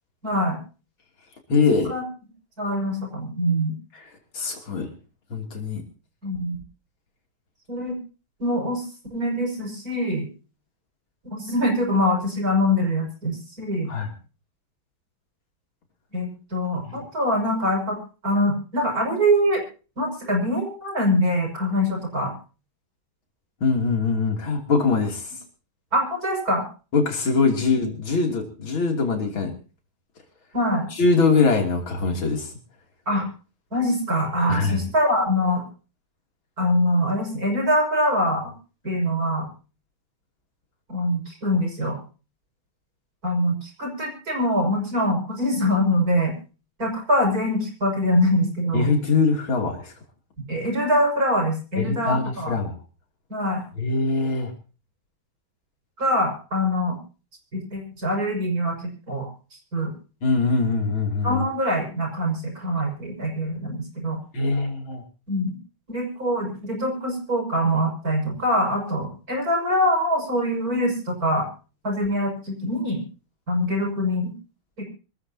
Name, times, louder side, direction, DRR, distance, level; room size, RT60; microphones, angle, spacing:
voice 1, 0.2-0.6 1.9-2.0 2.6-3.7 6.2-6.6 7.7-8.0 8.4-8.8 9.1-10.3 11.2-13.9 16.1-18.0 18.2-19.6 20.0-22.3 25.9-26.7 30.5-30.9 33.1-33.3 33.7-35.6 36.6-38.5 38.8-39.5 40.9-42.0 43.2-46.3 46.8-48.9 50.5-52.6 53.3-53.6 56.0-57.0 57.5-58.7 59.1-59.3 59.7-59.9 61.2-64.2 65.3-65.6 65.9-71.5 71.8-73.0 73.5-74.3 74.8-74.9, equal, 45° right, 2 dB, 6.8 m, -24 dB
voice 2, 1.5-2.0 4.3-4.9 5.3-5.8 13.9-14.1 16.8-17.0 23.6-25.3 26.9-29.5 31.0-32.5 34.5-34.8 48.7-49.9 51.8-52.8 53.8-54.5 60.2-61.4 64.3-65.0, left 4 dB, 70° left, 4 dB, 3.8 m, -22 dB
26.0 x 14.0 x 2.8 m, 0.35 s
omnidirectional pair, 2.3 m